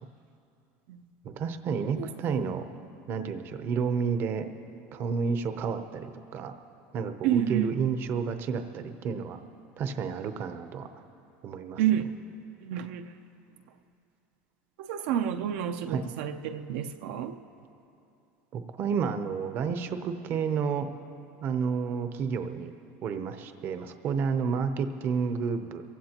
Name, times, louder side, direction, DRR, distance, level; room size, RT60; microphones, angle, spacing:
voice 1, 1.2-2.7 3.1-4.5 4.9-6.5 6.9-9.4 9.8-10.9 11.4-11.8 15.9-16.0 18.5-20.9 21.4-22.7 23.0-25.8, right 6 dB, 40° right, 8 dB, 0.7 m, -30 dB
voice 2, 7.2-7.7 11.8-12.1 12.6-13.0 14.8-17.3, right 10 dB, 70° right, 7 dB, 0.7 m, -29 dB
28.5 x 15.5 x 2.9 m, 2.8 s
cardioid pair, 155°, 6 cm